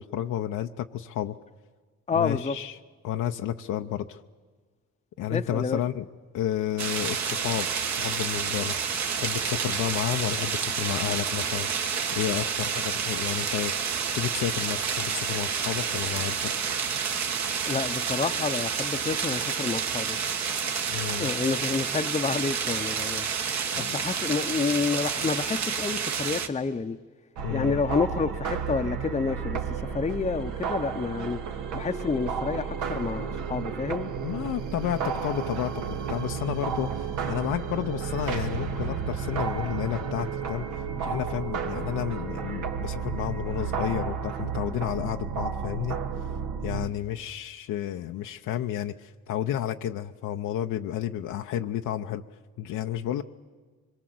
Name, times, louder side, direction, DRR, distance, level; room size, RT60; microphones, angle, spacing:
voice 1, 0.0-1.4 2.1-2.8 3.0-4.2 5.2-6.1 6.3-8.8 9.2-11.7 12.1-16.5 20.9-21.3 23.7-24.0 27.4-27.8 34.2-46.0 46.6-52.2 52.6-53.2, left 11 dB, 80° left, 0.8 m, -31 dB
voice 2, 2.1-2.5 5.3-5.8 17.6-20.2 21.0-23.3 23.8-27.0 27.5-31.4 31.7-34.1, left 4 dB, 20° left, 0.7 m, -29 dB
sound 1, 6.8-26.5, right 6 dB, 65° right, 1.8 m, -29 dB
sound 2, 27.4-46.9, right 6 dB, 85° right, 1.9 m, -32 dB
24.5 x 22.5 x 7.9 m
cardioid pair, 90°, 30 cm